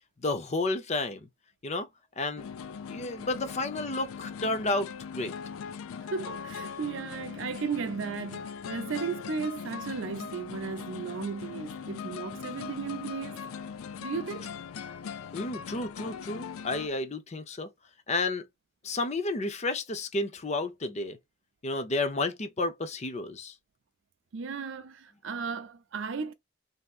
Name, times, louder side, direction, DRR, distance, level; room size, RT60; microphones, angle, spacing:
voice 1, 0.2-1.3 1.6-1.9 2.2-2.5 2.9-4.9 5.1-5.3 15.3-17.7 18.1-18.4 18.8-21.2 21.6-23.5, left 2 dB, 30° left, 0.5 m, -31 dB
sound 1, 2.4-16.9, left 6 dB, 80° left, 0.4 m, -40 dB
voice 2, 6.0-13.4 14.0-14.5 24.3-26.3, right 5 dB, 60° right, 0.5 m, -35 dB
3.4 x 2.7 x 2.4 m
head